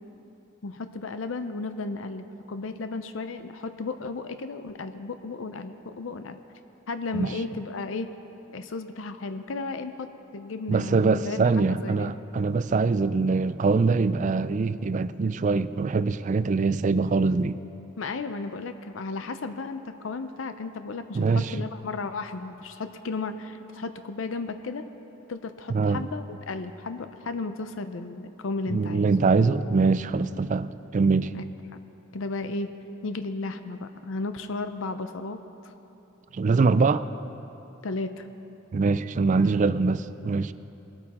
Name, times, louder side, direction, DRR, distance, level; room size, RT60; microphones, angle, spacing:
voice 1, 0.6-6.4 6.9-8.1 8.5-10.1 10.3-11.4 11.8-12.1 18.0-24.8 25.3-29.1 31.3-31.4 32.1-32.7 33.0-35.4 37.8-38.3, left 3 dB, 70° left, 9 dB, 0.6 m, -34 dB
voice 2, 10.7-17.6 21.1-21.6 25.7-26.1 28.7-31.3 36.3-37.1 38.7-40.5, right 4 dB, 40° right, 14 dB, 0.3 m, -23 dB
21.0 x 8.8 x 4.2 m, 3.0 s
head